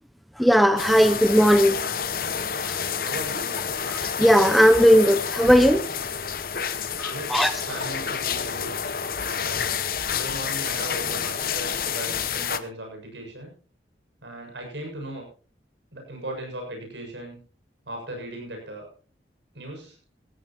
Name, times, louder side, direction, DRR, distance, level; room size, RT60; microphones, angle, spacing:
voice 1, 0.4-1.8 2.6-2.8 3.9-5.8 7.0-7.5, equal, ahead, 10 dB, 0.6 m, -18 dB
sound 1, 0.8-12.6, left 7 dB, 50° left, 0.9 m, -29 dB
voice 2, 3.0-3.6 7.0-7.4 7.7-8.8 9.2-9.7 10.1-13.5 14.2-15.3 15.9-17.4 17.9-18.9 19.5-20.0, right 1 dB, 75° right, 1 dB, 7.4 m, -37 dB
17.0 x 15.5 x 3.0 m, 0.37 s
head